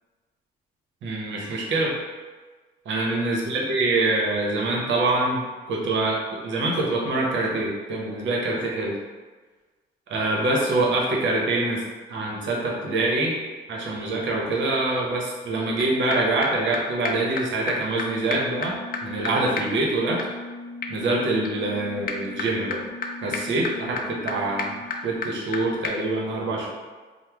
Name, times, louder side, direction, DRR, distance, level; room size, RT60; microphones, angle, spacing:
voice 1, 1.0-1.9 2.9-6.2 6.4-9.0 10.1-11.8 12.1-13.3 13.7-18.7 19.0-20.2 20.9-22.8 23.2-24.8 25.0-26.7, right 2 dB, 70° right, -2 dB, 0.8 m, -25 dB
sound 1, 15.8-15.9 16.1-16.2 16.4-16.5 16.7-16.8 17.0-17.1 17.4-17.5 17.7-17.8 18.0-18.1 18.3-25.6 25.8-25.9, left 4 dB, 45° left, 0.4 m, -33 dB
3.0 x 2.1 x 3.4 m, 1.4 s
cardioid pair, 90°, 20 cm